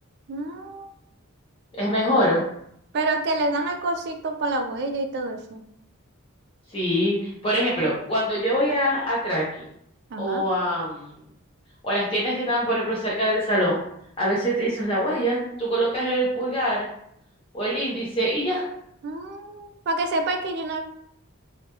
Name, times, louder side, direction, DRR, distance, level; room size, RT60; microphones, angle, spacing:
voice 1, 0.3-0.9 2.9-5.6 10.1-10.4 19.0-20.8, right 2 dB, 50° right, 5 dB, 0.3 m, -27 dB
voice 2, 1.8-2.4 6.7-9.4 10.2-11.1 11.8-13.8 14.2-16.9 17.5-18.6, equal, 25° left, -6 dB, 0.5 m, -24 dB
2.2 x 2.1 x 2.9 m, 0.72 s
head